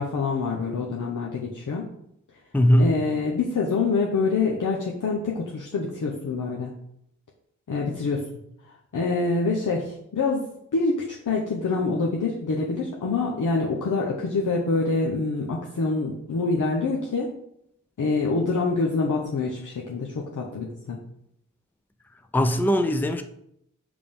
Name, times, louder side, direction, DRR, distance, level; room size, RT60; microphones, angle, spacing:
voice 1, 0.0-1.9 2.8-6.7 7.7-8.3 8.9-17.3 18.0-21.0, left 3 dB, 70° left, 0.9 m, -26 dB
voice 2, 2.5-2.9 22.3-23.2, equal, 5° left, 0.5 m, -20 dB
4.9 x 3.6 x 5.3 m
cardioid pair, 50°, 32 cm